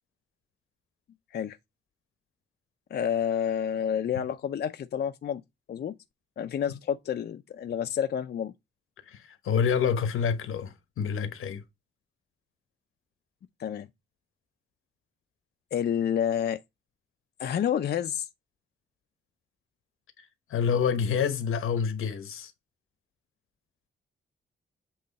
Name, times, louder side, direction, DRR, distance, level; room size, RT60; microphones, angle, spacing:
voice 1, 2.9-5.4 5.7-5.9 6.4-8.5 13.6-13.9 15.7-16.6 17.4-18.3, left 9 dB, 50° left, 0.5 m, -29 dB
voice 2, 9.1-11.6 20.5-22.5, left 7 dB, 85° left, 1.2 m, -27 dB
7.8 x 3.1 x 4.0 m
cardioid pair, 115°, 21 cm